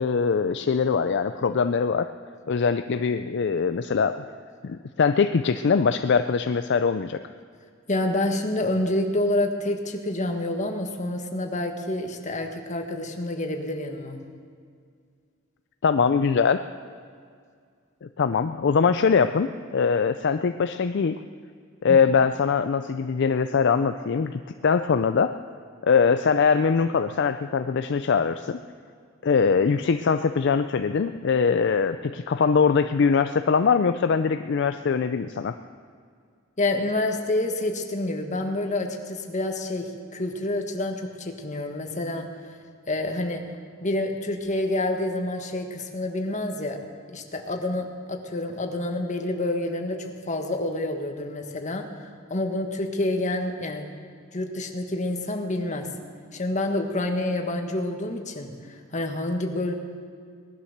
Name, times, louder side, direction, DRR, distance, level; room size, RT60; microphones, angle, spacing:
voice 1, 0.0-2.1 2.5-4.2 4.6-7.2 15.8-16.6 18.0-21.2 21.8-25.4 25.8-28.6 29.2-35.6, left 5 dB, 60° left, 9 dB, 0.4 m, -22 dB
voice 2, 7.9-14.2 21.9-22.0 36.6-42.3 42.9-43.4 43.8-46.8 47.1-53.9 54.3-55.9 56.3-59.7, left 1 dB, 35° left, 4 dB, 1.5 m, -28 dB
19.0 x 11.5 x 6.6 m, 2.1 s
head